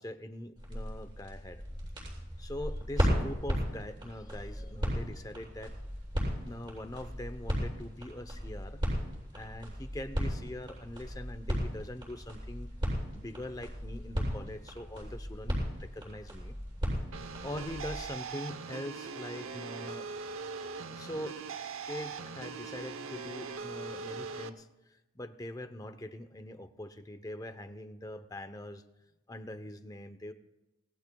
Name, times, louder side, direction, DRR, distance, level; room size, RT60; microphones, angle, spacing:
voice 1, 0.0-1.6 2.4-5.7 6.2-8.8 9.3-12.7 13.1-16.6 17.4-20.1 20.9-21.4 21.9-28.8 29.3-30.3, left 1 dB, 15° left, 9 dB, 0.7 m, -43 dB
sound 1, 0.6-18.1, equal, 20° right, 7.1 m, -36 dB
sound 2, 17.1-24.5, right 5 dB, 75° right, 0.8 m, -41 dB
26.5 x 19.5 x 2.3 m, 1.0 s
head